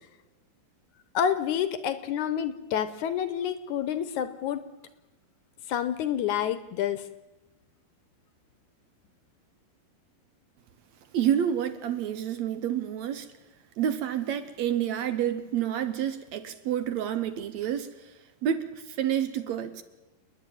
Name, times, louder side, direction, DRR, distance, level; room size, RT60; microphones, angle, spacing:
voice 1, 1.1-4.6 5.7-7.1, left 9 dB, 70° left, 12 dB, 2.1 m, -28 dB
voice 2, 11.1-13.3 13.8-18.1 18.4-19.8, right 10 dB, 65° right, 10 dB, 1.9 m, -29 dB
29.5 x 10.0 x 9.2 m, 1.0 s
omnidirectional pair, 3.9 m